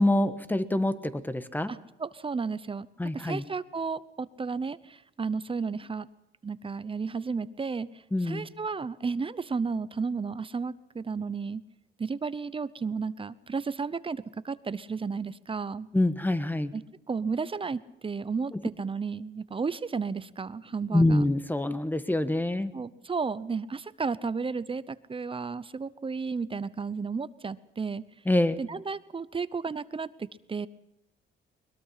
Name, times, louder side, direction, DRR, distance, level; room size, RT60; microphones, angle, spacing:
voice 1, 0.0-1.7 3.0-3.4 8.1-8.5 15.9-16.7 20.9-22.7 28.3-28.6, left 1 dB, 10° left, 12 dB, 1.4 m, -25 dB
voice 2, 1.7-2.9 3.1-6.1 6.4-7.9 8.2-11.6 12.0-15.9 16.7-16.8 17.1-21.2 22.7-28.0 28.6-30.7, right 5 dB, 25° right, 16 dB, 0.8 m, -33 dB
21.5 x 21.5 x 5.8 m, 0.86 s
cardioid pair, 90°, 20 cm